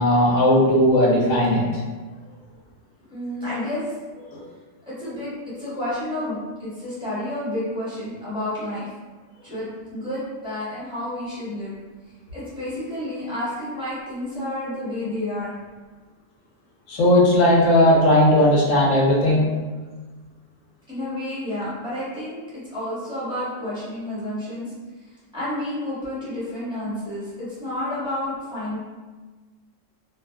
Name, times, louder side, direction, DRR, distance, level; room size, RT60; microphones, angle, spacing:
voice 1, 0.0-1.7 4.3-4.4 16.9-19.5, left 1 dB, 80° left, -3 dB, 1.0 m, -17 dB
voice 2, 3.1-3.8 4.9-8.9 9.4-11.7 12.3-15.5 20.9-24.7 25.3-28.8, left 1 dB, 5° right, -13 dB, 1.2 m, -30 dB
2.5 x 2.3 x 2.3 m, 1.3 s
omnidirectional pair, 1.3 m